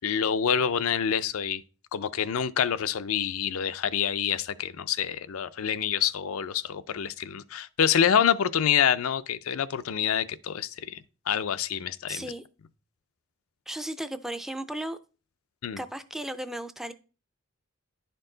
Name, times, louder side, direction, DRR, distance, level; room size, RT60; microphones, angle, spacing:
voice 1, 0.0-1.6 1.9-11.0 11.3-12.2 15.6-15.8, left 8 dB, 85° left, 0.5 m, -27 dB
voice 2, 12.1-12.4 13.7-15.0 15.8-16.9, right 1 dB, ahead, 0.4 m, -35 dB
10.5 x 4.5 x 3.8 m
head